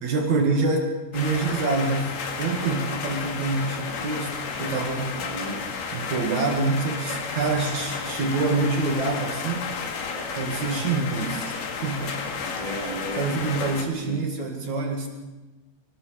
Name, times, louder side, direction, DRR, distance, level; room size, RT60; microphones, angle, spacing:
voice 1, 0.0-5.1 5.9-9.7 10.4-12.5 13.2-15.1, right 3 dB, 60° right, 2 dB, 3.4 m, -26 dB
sound 1, 1.1-13.9, left 5 dB, 85° left, 3.8 m, -32 dB
voice 2, 4.9-5.6 10.1-10.3 12.5-14.3, right 1 dB, 10° right, -1 dB, 3.9 m, -35 dB
25.0 x 20.0 x 6.5 m, 1.1 s
omnidirectional pair, 3.7 m